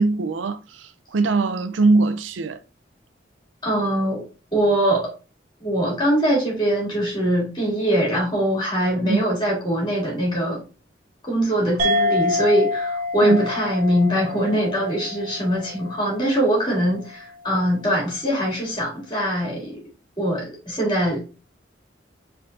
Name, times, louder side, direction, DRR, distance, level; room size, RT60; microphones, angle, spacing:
voice 1, 0.0-2.6 9.0-9.2 13.2-13.4, right 3 dB, 90° right, 0.5 m, -21 dB
voice 2, 3.6-4.2 4.5-5.1 5.6-10.6 11.2-19.8 20.2-21.2, equal, 25° left, 2.6 m, -22 dB
sound 1, 11.8-16.7, left 2 dB, 45° right, 0.8 m, -27 dB
4.4 x 3.8 x 2.5 m
head